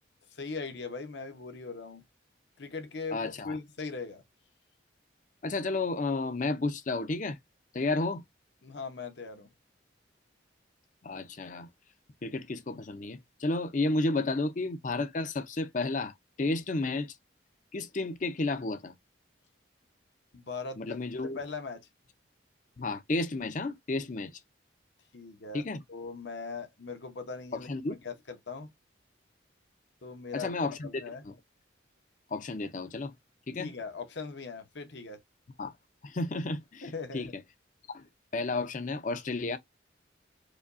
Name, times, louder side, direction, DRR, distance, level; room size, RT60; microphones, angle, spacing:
voice 1, 0.3-2.0 2.6-4.2 8.6-9.5 20.3-21.0 21.2-21.8 25.1-25.6 25.9-28.7 30.0-30.5 30.8-31.2 33.6-35.2 36.8-37.3, left 4 dB, 65° left, 0.8 m, -40 dB
voice 2, 3.1-3.6 5.4-7.4 7.7-8.2 11.0-11.7 12.2-17.1 17.7-18.9 20.8-21.4 22.8-24.3 25.5-25.8 27.5-28.0 30.3-31.3 32.3-33.1 33.5-33.7 35.6-35.7 36.0-37.3 37.9-38.1 38.3-39.6, left 2 dB, 40° left, 0.5 m, -32 dB
5.0 x 2.3 x 2.4 m
head